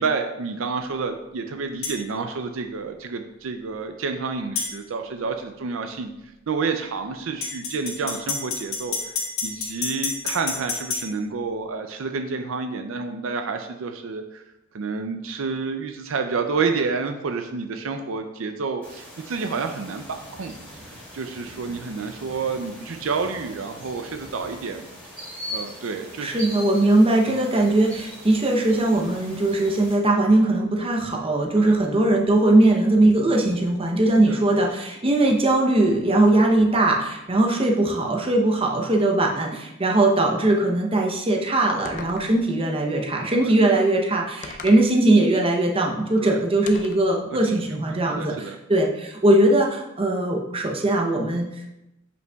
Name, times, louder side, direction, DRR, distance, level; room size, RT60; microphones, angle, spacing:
voice 1, 0.0-9.2 9.4-14.4 14.7-20.5 21.1-24.9 25.5-26.4 27.3-27.5 31.6-31.7 34.3-34.4 43.4-43.5 46.2-46.4 47.5-48.6, right 4 dB, 65° right, 6 dB, 0.4 m, -29 dB
sound 1, 1.8-2.0 4.6-4.7 7.4-11.0, left 4 dB, 70° left, 1.7 m, -28 dB
sound 2, 18.8-29.9, equal, 10° left, 2.2 m, -41 dB
voice 2, 26.2-51.5, right 2 dB, 25° right, 1 dB, 0.7 m, -20 dB
sound 3, 41.8-42.5 44.4-44.9 46.7-47.1, left 4 dB, 40° left, 0.5 m, -38 dB
7.8 x 5.2 x 2.3 m, 0.92 s
head